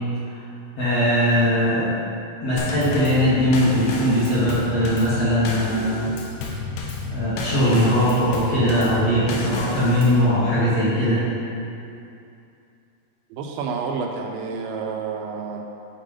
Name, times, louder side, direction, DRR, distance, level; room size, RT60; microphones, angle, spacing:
voice 1, 0.8-2.0 2.4-6.1 7.1-11.2, equal, 55° left, -11 dB, 1.8 m, -20 dB
Drum kit / Snare drum / Bass drum, 2.6-10.3, left 3 dB, 90° left, 2.8 m, -31 dB
voice 2, 13.3-15.6, right 5 dB, 80° right, 2 dB, 2.1 m, -29 dB
7.4 x 4.6 x 5.1 m, 2.6 s
omnidirectional pair, 4.3 m